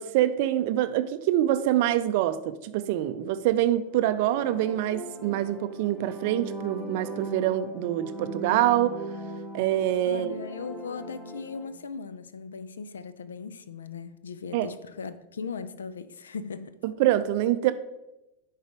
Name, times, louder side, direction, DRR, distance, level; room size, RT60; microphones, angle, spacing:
voice 1, 0.0-9.0 9.5-10.3 14.5-14.7 16.8-17.7, right 13 dB, 50° right, 0.4 m, -25 dB
sound 1, 3.8-11.7, equal, 20° left, 1.6 m, -40 dB
voice 2, 10.0-16.8, left 5 dB, 70° left, 0.5 m, -38 dB
10.5 x 4.0 x 4.7 m
figure-of-eight pair, 90°, 0 cm